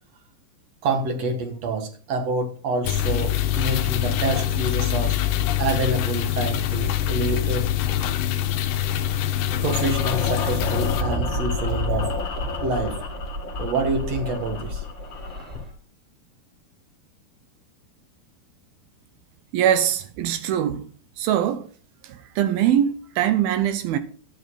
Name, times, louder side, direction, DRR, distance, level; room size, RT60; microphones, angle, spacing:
voice 1, 0.8-5.1 5.6-7.7 9.6-12.1 12.6-13.0 13.6-14.9, right 3 dB, 50° right, 2.5 m, -27 dB
sound 1, 2.8-11.0, left 11 dB, 75° left, 2.3 m, -24 dB
sound 2, 9.7-15.6, left 4 dB, 45° left, 1.6 m, -33 dB
sound 3, 10.6-15.7, left 1 dB, 10° right, 2.8 m, -30 dB
voice 2, 19.5-20.9 21.2-21.7 22.0-24.0, right 10 dB, 80° right, 2.6 m, -22 dB
12.0 x 9.3 x 4.2 m
omnidirectional pair, 4.4 m